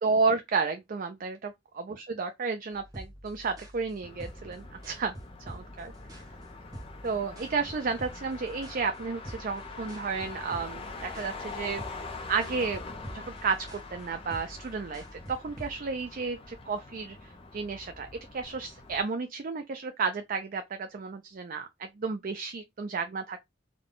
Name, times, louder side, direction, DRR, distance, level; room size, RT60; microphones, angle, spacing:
voice 1, 0.0-5.1 5.5-5.9 7.0-12.0 12.3-12.8 13.1-18.1 18.3-23.4, right 4 dB, 45° right, 0.4 m, -32 dB
sound 1, 2.7-15.7, equal, 20° right, 0.9 m, -47 dB
Motor vehicle (road), 4.0-19.0, left 3 dB, 30° left, 0.7 m, -44 dB
3.7 x 2.3 x 3.8 m
head